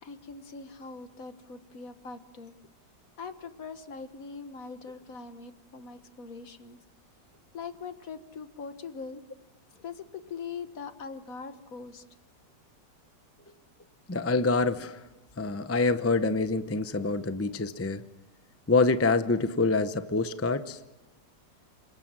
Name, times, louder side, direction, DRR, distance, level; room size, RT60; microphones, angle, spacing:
voice 1, 0.0-2.5 3.2-6.8 7.5-9.2 9.7-12.0, left 5 dB, 50° left, 10 dB, 1.8 m, -42 dB
voice 2, 14.1-15.0 15.4-18.0 18.7-20.8, left 3 dB, 20° left, 11 dB, 0.4 m, -26 dB
27.5 x 23.5 x 7.5 m, 0.97 s
omnidirectional pair, 1.9 m